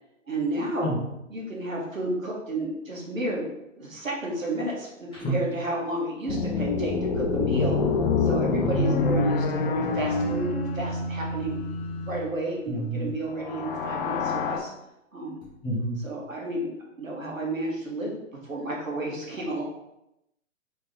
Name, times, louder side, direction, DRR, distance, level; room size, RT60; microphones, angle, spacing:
voice 1, 0.3-1.0 1.3-3.5 3.8-7.8 8.2-11.6 12.0-14.7 15.1-15.4 16.0-16.7 17.0-18.2 18.4-19.6, right 1 dB, 85° right, -2 dB, 1.5 m, -31 dB
sound 1, 6.3-12.3 13.3-14.6, left 4 dB, 40° left, 0.5 m, -26 dB
voice 2, 8.4-8.9 12.7-13.1 15.6-16.0, right 2 dB, 10° left, -5 dB, 0.9 m, -28 dB
4.1 x 3.4 x 3.2 m, 0.85 s
figure-of-eight pair, 125°, 39 cm